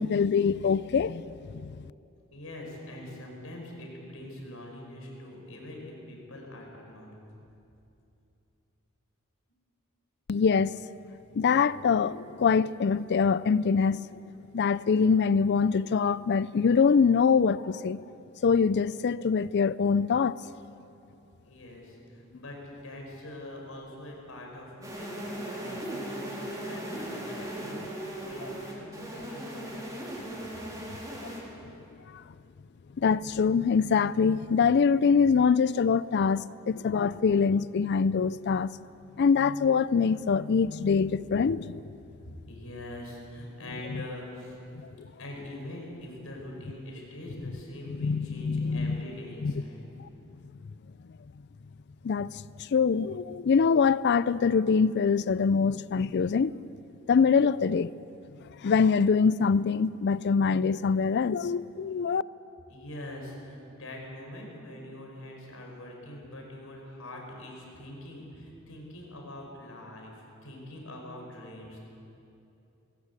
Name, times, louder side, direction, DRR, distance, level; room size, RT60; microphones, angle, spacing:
voice 1, 0.0-1.7 10.3-10.7 11.4-14.0 14.5-18.0 18.4-20.4 32.1-32.2 33.0-38.7 39.2-41.8 44.8-45.1 48.0-49.1 49.4-49.5 50.0-50.1 52.0-56.5 57.1-57.9 58.6-62.2, left 5 dB, 55° left, 0.4 m, -24 dB
voice 2, 2.3-7.1 21.4-30.2 42.2-44.6 45.2-49.8 62.7-71.8, left 1 dB, 75° left, 5.5 m, -43 dB
sound 1, 24.8-31.4, right 1 dB, 15° right, 4.3 m, -38 dB
20.5 x 18.5 x 8.3 m
head